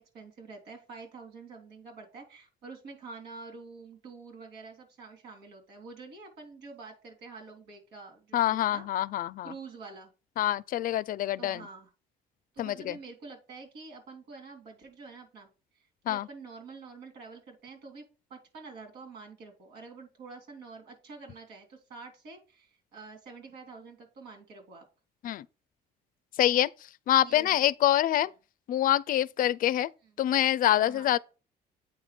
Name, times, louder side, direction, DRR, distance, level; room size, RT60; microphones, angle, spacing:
voice 1, 0.0-8.9 9.4-10.1 11.4-11.9 12.5-15.5 15.7-18.0 18.3-24.8 27.2-27.7 30.7-31.1, right 4 dB, 75° right, 3.4 m, -47 dB
voice 2, 8.3-9.5 10.4-11.6 12.6-13.0 16.1-16.3 25.2-25.5 26.4-26.7 27.1-28.3 28.7-29.9 30.2-31.2, left 12 dB, 55° left, 0.4 m, -26 dB
8.7 x 4.3 x 4.3 m
cardioid pair, 110°, 17 cm